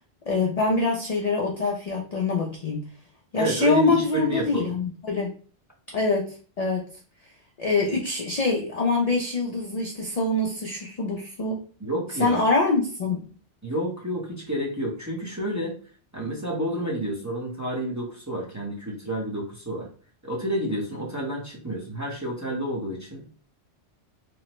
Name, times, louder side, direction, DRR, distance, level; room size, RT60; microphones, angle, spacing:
voice 1, 0.3-2.8 3.3-5.3 5.9-6.9 7.6-11.6 12.2-13.2, left 3 dB, 50° left, -1 dB, 0.5 m, -25 dB
voice 2, 3.3-4.8 11.8-12.5 13.6-15.7 16.1-19.9 20.2-23.2, equal, 20° right, -4 dB, 0.7 m, -29 dB
3.1 x 2.0 x 2.9 m, 0.40 s
omnidirectional pair, 1.2 m